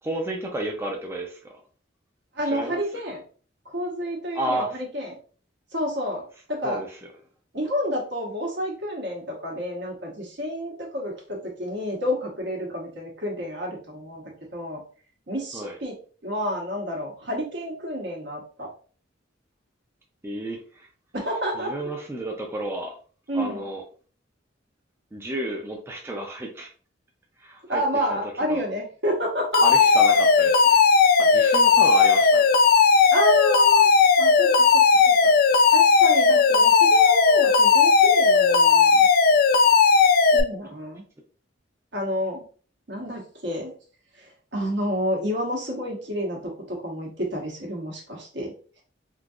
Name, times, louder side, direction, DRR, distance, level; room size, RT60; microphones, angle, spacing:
voice 1, 0.0-1.6 2.5-2.8 4.3-4.8 6.6-7.1 15.5-15.8 20.2-20.9 21.5-22.9 23.3-23.8 25.1-26.7 27.4-27.8 28.1-28.2 28.5-28.6 29.6-30.8 31.2-32.5, right 1 dB, 15° right, 0 dB, 0.4 m, -32 dB
voice 2, 2.3-3.2 3.7-5.1 5.7-6.8 7.5-14.2 14.5-14.8 15.3-15.9 16.2-18.7 21.1-21.7 23.3-23.6 27.7-29.6 33.1-33.9 34.2-34.8 35.2-35.3 35.7-39.1 40.3-41.0 41.9-42.4 42.9-43.7 44.2-48.5, equal, 65° right, -1 dB, 1.2 m, -29 dB
Alarm, 29.5-40.4, left 5 dB, 55° left, 0.4 m, -17 dB
3.7 x 2.7 x 2.4 m, 0.41 s
head